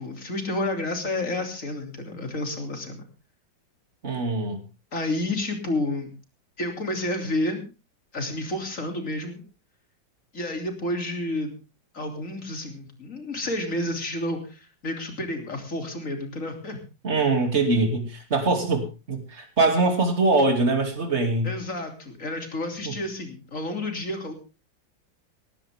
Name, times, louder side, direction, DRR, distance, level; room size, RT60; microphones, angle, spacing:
voice 1, 0.0-3.1 4.9-6.1 6.6-7.7 8.1-9.4 10.3-11.5 11.9-16.8 21.4-24.3, left 1 dB, 40° left, 4 dB, 3.4 m, -30 dB
voice 2, 4.0-4.6 17.0-21.5 22.8-22.9, right 3 dB, 35° right, 4 dB, 3.1 m, -23 dB
18.0 x 15.0 x 3.6 m, 0.31 s
omnidirectional pair, 2.0 m